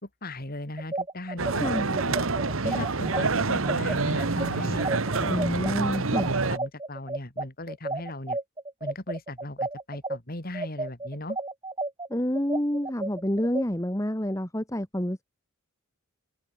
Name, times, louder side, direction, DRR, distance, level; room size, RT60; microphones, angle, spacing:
voice 1, 0.0-1.6 2.0-2.2 2.6-4.9 5.2-5.3 6.5-8.4 8.8-11.4, left 1 dB, 45° left, 3.0 m, -37 dB
sound 1, 0.8-10.2 10.5-13.6, right 2 dB, 20° right, 4.4 m, -32 dB
sound 2, 1.4-6.6, right 3 dB, 65° right, 1.3 m, -27 dB
voice 2, 1.6-2.0 5.2-6.3 12.1-15.2, equal, 15° left, 1.9 m, -28 dB
open air
head